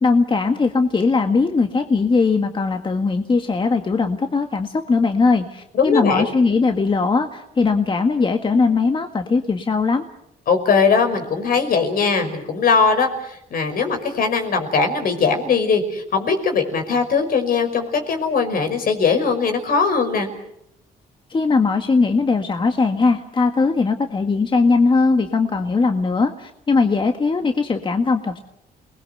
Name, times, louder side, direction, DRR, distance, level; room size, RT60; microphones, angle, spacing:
voice 1, 0.0-10.1 21.3-28.4, left 4 dB, 30° left, 5 dB, 1.8 m, -19 dB
voice 2, 5.7-6.3 10.5-20.3, left 5 dB, 65° left, 7 dB, 5.5 m, -20 dB
28.5 x 20.5 x 8.0 m, 0.79 s
cardioid pair, 105°, 16 cm